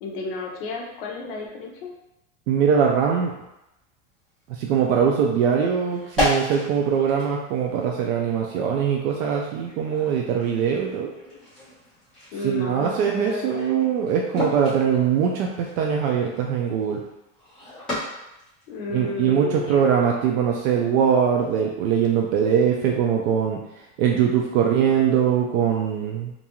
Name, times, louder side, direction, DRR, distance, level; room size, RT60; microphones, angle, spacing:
voice 1, 0.0-1.9 12.3-13.6 18.7-20.0, left 3 dB, 50° left, -1 dB, 0.5 m, -32 dB
voice 2, 2.5-3.3 4.5-11.1 12.4-17.0 18.9-23.6 24.0-26.3, right 7 dB, 85° right, 0 dB, 0.5 m, -22 dB
sound 1, 2.7-2.8 3.2-3.3 4.3-4.4 4.7-5.0 5.7-19.0, left 1 dB, ahead, 0.7 m, -34 dB
2.6 x 2.3 x 2.8 m, 0.90 s
supercardioid pair, 180°, 39 cm